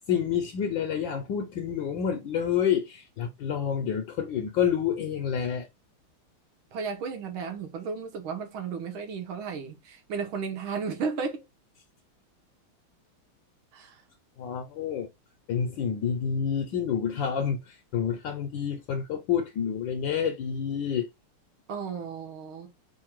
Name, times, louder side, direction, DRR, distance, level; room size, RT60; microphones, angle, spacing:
voice 1, 0.1-5.7 14.4-15.1 15.5-21.1, left 8 dB, 70° left, 1.2 m, -28 dB
voice 2, 6.7-11.4 13.7-14.0 21.7-22.7, right 5 dB, 70° right, 1.7 m, -34 dB
3.9 x 2.6 x 4.4 m
omnidirectional pair, 2.4 m